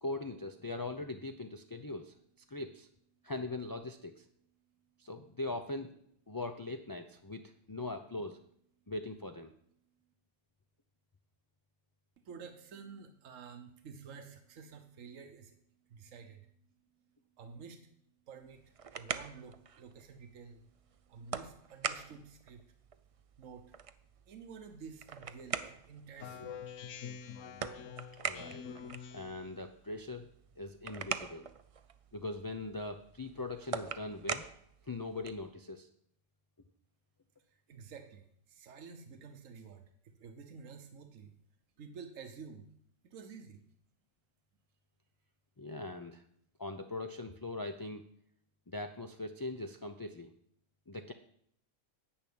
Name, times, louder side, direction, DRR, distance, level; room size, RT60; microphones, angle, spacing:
voice 1, 0.0-2.1 2.5-2.9 3.2-4.3 5.0-6.0 6.3-8.4 8.9-9.5 28.2-28.6 29.1-30.3 30.6-31.5 32.1-34.4 34.9-35.9 45.6-46.2 46.6-48.0 48.7-50.3 50.9-51.1, left 2 dB, 30° left, 6 dB, 0.4 m, -41 dB
voice 2, 12.2-15.6 15.9-16.5 17.4-17.9 18.3-20.6 21.1-22.6 23.4-23.7 24.3-26.6 27.7-27.8 37.5-41.3 41.8-42.7 43.0-43.6, right 5 dB, 80° right, 7 dB, 1.4 m, -50 dB
sound 1, 18.4-35.5, right 6 dB, 60° right, 0.3 m, -44 dB
Speech synthesizer, 26.2-29.5, left 7 dB, 75° left, 1.1 m, -46 dB
10.0 x 6.2 x 8.6 m, 0.68 s
omnidirectional pair, 1.3 m